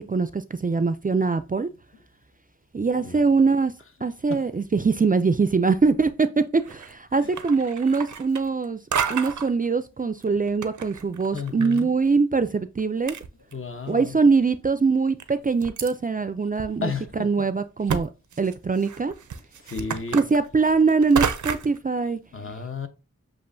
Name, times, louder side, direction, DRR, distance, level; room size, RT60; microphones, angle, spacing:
voice 1, 0.1-1.7 2.7-3.7 4.0-8.8 9.1-13.2 13.9-18.1 18.4-19.1 20.1-22.2, right 4 dB, 30° right, 0.3 m, -22 dB
sound 1, 6.6-7.0 7.3-8.6 8.9-9.5 10.2-11.8 12.1-12.2 12.8-12.9 13.1-13.9 14.4-14.5 15.2-15.9 16.6-16.7 17.1-17.2 17.9-18.0 18.3-21.8, right 7 dB, 90° right, 0.5 m, -30 dB
voice 2, 11.3-11.9 13.5-14.1 16.8-17.5 19.7-20.2 22.3-22.9, left 5 dB, 45° left, 0.8 m, -32 dB
7.3 x 2.5 x 2.6 m
wide cardioid pair, 40°, 29 cm